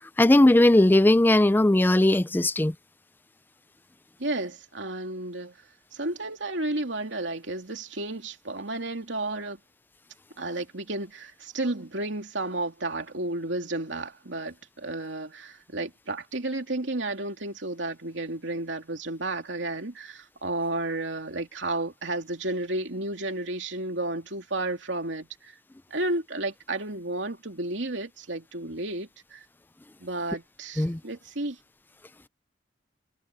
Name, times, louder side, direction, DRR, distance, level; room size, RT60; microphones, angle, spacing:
voice 1, 0.2-2.7 30.8-31.0, left 1 dB, 10° left, 0.4 m, -18 dB
voice 2, 4.2-5.5 5.9-9.6 10.4-25.6 25.9-29.4 30.0-31.6, right 2 dB, 80° right, 2.7 m, -32 dB
head